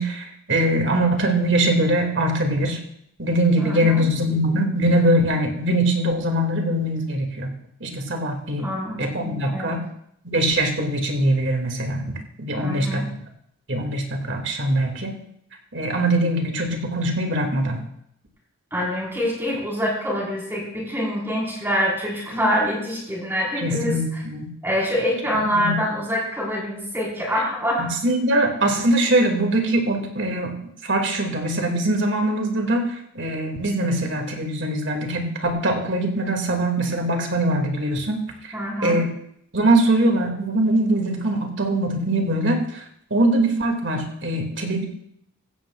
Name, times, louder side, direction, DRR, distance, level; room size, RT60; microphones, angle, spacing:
voice 1, 0.0-2.8 3.2-7.5 7.8-8.7 9.0-9.8 10.2-12.0 12.4-13.1 13.7-15.1 15.7-17.8 23.6-24.5 25.6-25.7 27.8-30.6 30.8-32.9 33.1-38.2 38.8-39.1 39.5-42.6 43.1-44.8, right 1 dB, 60° right, 3 dB, 2.3 m, -22 dB
voice 2, 3.6-4.0 8.6-9.7 12.5-13.1 18.7-24.0 24.6-27.9 38.5-39.0, equal, 10° right, -4 dB, 4.4 m, -25 dB
16.0 x 14.5 x 2.4 m, 0.73 s
head